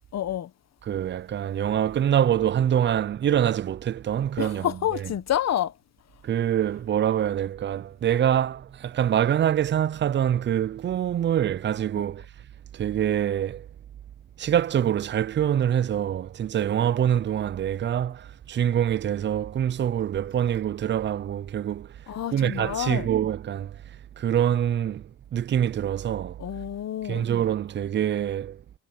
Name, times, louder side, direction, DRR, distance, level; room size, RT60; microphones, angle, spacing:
voice 1, 0.1-0.5 4.4-5.7 22.1-23.1 26.4-27.3, left 11 dB, 60° left, 1.3 m, -28 dB
voice 2, 0.8-5.1 6.2-12.3 12.7-13.7 14.4-26.4 27.0-28.6, right 10 dB, 40° right, 0.5 m, -25 dB
cardioid pair, 90°, 30 cm